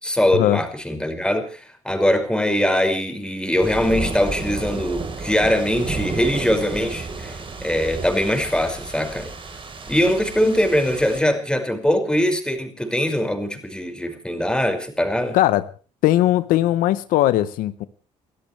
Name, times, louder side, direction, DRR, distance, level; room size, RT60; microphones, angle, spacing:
voice 1, 0.0-9.3 9.9-15.4, left 1 dB, 5° left, 5 dB, 5.6 m, -22 dB
sound 1, 3.6-11.2, right 3 dB, 40° right, 4.2 m, -32 dB
voice 2, 15.3-15.7 16.0-17.9, left 14 dB, 85° left, 14 dB, 0.9 m, -19 dB
29.5 x 13.0 x 3.3 m, 0.36 s
supercardioid pair, 75°, 14 cm